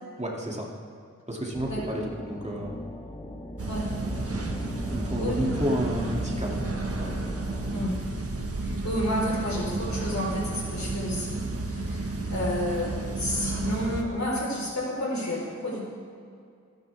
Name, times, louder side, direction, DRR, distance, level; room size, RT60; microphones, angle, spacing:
voice 1, 0.2-0.7 1.3-2.8 4.9-6.6 7.0-7.2, equal, 25° right, -3 dB, 2.7 m, -31 dB
sound 1, 1.5-7.8, left 1 dB, 15° left, 1.1 m, -40 dB
sound 2, 3.6-14.0, right 2 dB, 50° right, 1.5 m, -32 dB
voice 2, 8.6-12.0 12.3-15.8, left 1 dB, 65° left, -3 dB, 4.5 m, -30 dB
26.5 x 10.5 x 3.6 m, 2.3 s
wide cardioid pair, 75°, 30 cm